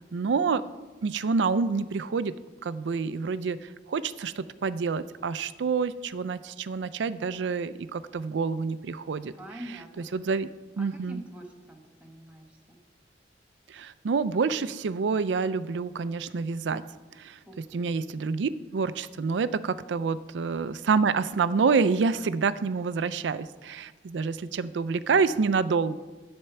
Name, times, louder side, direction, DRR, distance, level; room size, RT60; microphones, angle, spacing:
voice 1, 0.1-0.6 1.0-2.3 2.6-9.3 10.1-10.5 10.8-11.2 13.7-16.8 17.2-17.4 17.7-26.0, right 5 dB, 80° right, 15 dB, 0.4 m, -27 dB
voice 2, 9.3-10.3 10.8-12.8 17.5-17.9, right 1 dB, 10° right, 1 dB, 1.1 m, -45 dB
10.0 x 4.5 x 6.8 m, 1.2 s
head